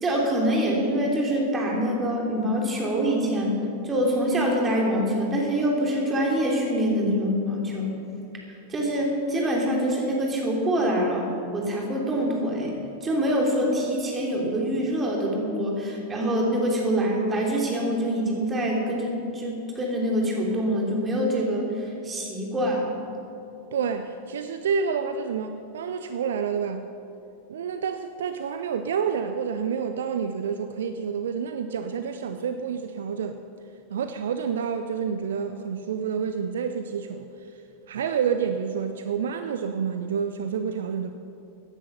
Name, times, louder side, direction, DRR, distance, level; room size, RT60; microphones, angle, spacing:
voice 1, 0.0-3.6 3.8-7.9 8.7-11.3 11.5-22.9, equal, 20° right, -1 dB, 3.2 m, -25 dB
voice 2, 23.7-26.8 27.5-33.4 33.9-37.3 37.9-41.1, right 6 dB, 60° right, 8 dB, 0.5 m, -28 dB
15.5 x 10.0 x 5.6 m, 2.9 s
figure-of-eight pair, 90°, 0 cm